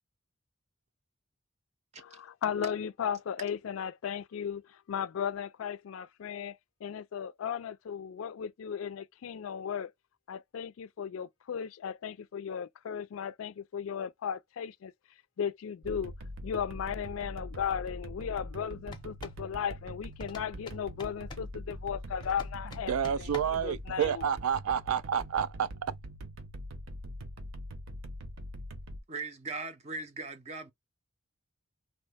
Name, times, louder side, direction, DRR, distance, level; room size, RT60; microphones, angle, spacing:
voice 1, 2.0-9.9 10.3-14.9 15.4-16.1 16.4-22.9 23.6-24.1, left 7 dB, 75° left, 0.3 m, -36 dB
sound 1, 15.8-29.0, equal, 75° right, 0.8 m, -43 dB
sound 2, 18.8-19.5 20.2-21.5 22.2-23.7, left 3 dB, 20° left, 0.5 m, -47 dB
voice 2, 22.6-26.0, right 8 dB, 90° right, 0.4 m, -30 dB
voice 3, 29.1-30.7, right 3 dB, 30° right, 0.5 m, -39 dB
3.0 x 2.1 x 3.3 m
head